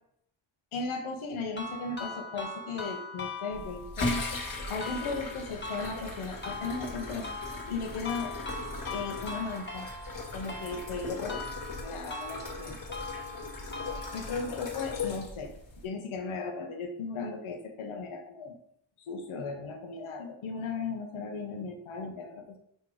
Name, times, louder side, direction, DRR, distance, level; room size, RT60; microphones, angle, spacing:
voice 1, 0.7-4.1 4.7-7.3 7.7-8.6 8.9-9.9 10.3-11.5 11.8-12.8 14.1-15.5 15.8-18.6 19.0-22.6, left 4 dB, 90° left, 3 dB, 1.3 m, -36 dB
sound 1, 1.6-14.5, left 3 dB, 25° left, 1.2 m, -41 dB
sound 2, 3.5-15.9, left 3 dB, 45° left, 1.8 m, -38 dB
5.4 x 4.5 x 4.9 m, 0.70 s
wide cardioid pair, 120°, 47 cm